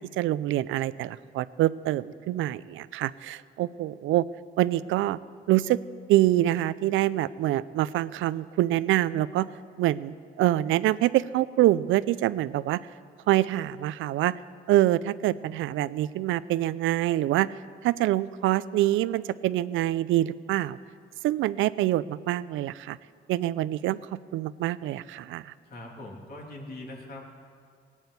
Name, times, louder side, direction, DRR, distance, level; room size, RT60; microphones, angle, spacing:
voice 1, 0.0-4.2 4.6-5.2 5.5-5.8 6.1-9.5 9.8-12.8 13.3-14.3 14.7-17.5 17.8-20.8 21.2-23.0 23.3-25.5, right 14 dB, 85° right, 17 dB, 0.4 m, -25 dB
voice 2, 25.6-27.2, left 1 dB, 50° left, 0 dB, 2.9 m, -41 dB
18.5 x 8.9 x 8.1 m, 2.1 s
cardioid pair, 90°, 20 cm